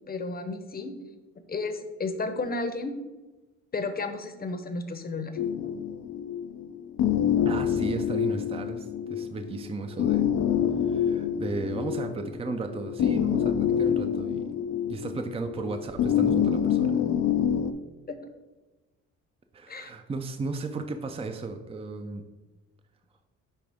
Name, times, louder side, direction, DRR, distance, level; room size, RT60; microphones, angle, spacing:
voice 1, 0.1-0.9 1.5-2.9 3.7-5.8 18.1-18.2 19.7-19.9, left 3 dB, 30° left, 8 dB, 0.8 m, -33 dB
sound 1, 5.4-17.7, left 9 dB, 60° left, 0.5 m, -27 dB
voice 2, 7.5-10.2 10.8-14.4 14.9-16.9 19.5-22.2, right 3 dB, 20° right, 6 dB, 0.5 m, -35 dB
10.0 x 3.4 x 3.5 m, 1.2 s
cardioid pair, 90°, 30 cm